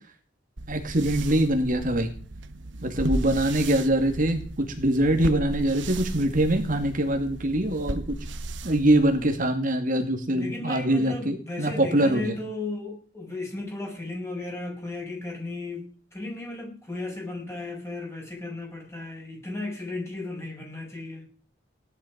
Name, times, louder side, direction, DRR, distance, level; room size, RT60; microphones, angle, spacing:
sound 1, 0.6-9.5, right 2 dB, 80° right, 1.1 m, -35 dB
voice 1, 0.7-2.1 2.8-8.2 8.6-12.4, right 1 dB, 45° right, 5 dB, 2.5 m, -23 dB
voice 2, 10.3-21.3, left 2 dB, 15° left, 0 dB, 6.8 m, -35 dB
17.5 x 12.0 x 5.3 m, 0.41 s
head